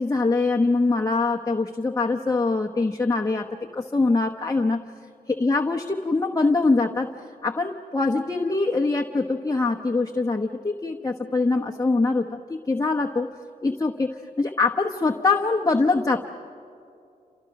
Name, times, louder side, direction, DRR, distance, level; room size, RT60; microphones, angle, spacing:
voice 1, 0.0-4.8 5.4-7.1 7.4-13.3 13.6-16.2, left 3 dB, 25° left, 1 dB, 1.0 m, -23 dB
29.0 x 28.5 x 6.0 m, 2.5 s
wide cardioid pair, 115°, 16 cm